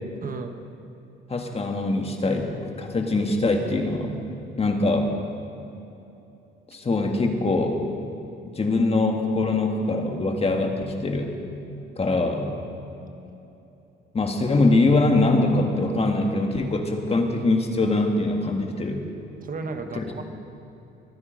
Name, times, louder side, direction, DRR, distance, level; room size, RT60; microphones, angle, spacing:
voice 1, 0.2-0.6 19.4-20.2, right 4 dB, 45° right, 6 dB, 1.2 m, -33 dB
voice 2, 1.3-4.1 4.6-5.1 6.7-7.8 8.0-8.1 8.6-11.3 12.0-12.5 14.1-19.0 19.9-20.0, left 2 dB, 30° left, 3 dB, 1.9 m, -23 dB
22.5 x 10.0 x 5.2 m, 2.9 s
cardioid pair, 90°, 20 cm